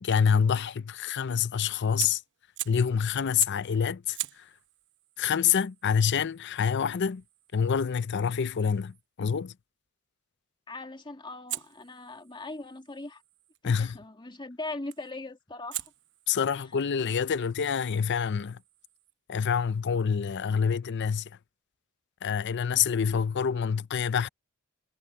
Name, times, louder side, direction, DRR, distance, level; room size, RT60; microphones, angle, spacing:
voice 1, 0.0-2.2 2.7-4.5 5.2-7.2 7.5-9.5 13.6-14.0 16.3-18.6 19.3-21.3 22.2-24.3, left 7 dB, 55° left, 0.5 m, -27 dB
Fire, 2.0-2.9 3.4-3.7 4.1-9.0 11.5-13.6 14.9-15.2 15.7-19.1, right 14 dB, 55° right, 0.9 m, -43 dB
voice 2, 10.7-13.2 13.6-15.9, left 2 dB, 20° left, 1.9 m, -40 dB
head